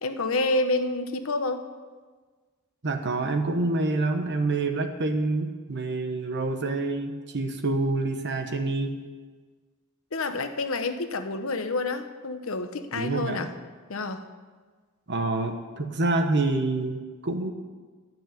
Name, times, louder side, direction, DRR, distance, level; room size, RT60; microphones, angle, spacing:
voice 1, 0.0-1.7 10.1-13.5 13.9-14.2, left 2 dB, 70° left, 8 dB, 0.9 m, -28 dB
voice 2, 2.8-9.0 12.9-13.4 15.1-17.5, right 2 dB, 55° right, 6 dB, 1.1 m, -27 dB
11.5 x 6.2 x 8.9 m, 1.4 s
head